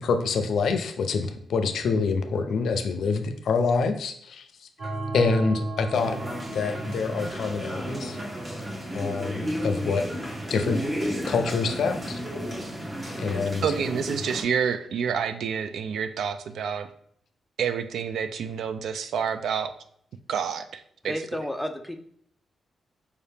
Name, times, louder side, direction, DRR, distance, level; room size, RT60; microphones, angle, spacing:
voice 1, 0.0-4.7 5.1-6.2 6.5-8.2 8.9-10.0 10.5-10.8 11.2-12.2 13.2-13.7, left 4 dB, 65° left, 7 dB, 0.4 m, -26 dB
sound 1, 4.8-10.8, right 2 dB, 55° right, 1.6 m, -37 dB
sound 2, 5.9-14.4, equal, 25° right, 0.7 m, -33 dB
voice 2, 13.6-16.9 17.6-19.7 20.3-21.2, right 7 dB, 80° right, 10 dB, 0.3 m, -28 dB
voice 3, 21.0-22.0, equal, ahead, 6 dB, 0.3 m, -31 dB
4.7 x 2.8 x 3.4 m, 0.65 s
wide cardioid pair, 175°, 0 cm